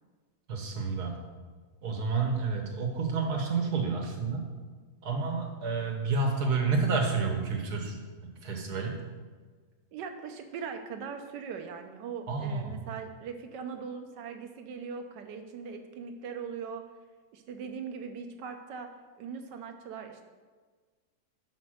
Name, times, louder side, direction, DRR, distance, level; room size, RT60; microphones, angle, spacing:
voice 1, 0.5-1.2 1.8-4.5 5.0-8.0 8.4-9.0 12.3-12.8, right 4 dB, 65° right, 2 dB, 1.6 m, -30 dB
voice 2, 9.9-16.8 17.3-18.9 19.2-20.2, right 6 dB, 80° right, 6 dB, 1.4 m, -40 dB
6.0 x 5.1 x 6.3 m, 1.5 s
omnidirectional pair, 1.9 m